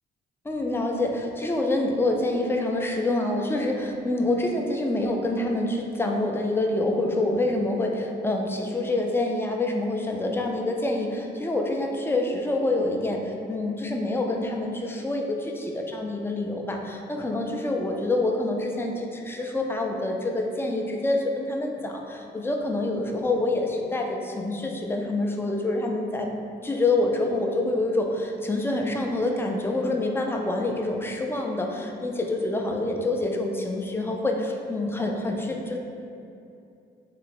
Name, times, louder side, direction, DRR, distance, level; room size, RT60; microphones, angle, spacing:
voice 1, 0.4-26.3 26.6-35.8, left 2 dB, 10° left, 1 dB, 0.4 m, -26 dB
3.2 x 2.8 x 4.0 m, 2.7 s
cardioid pair, 90°, 20 cm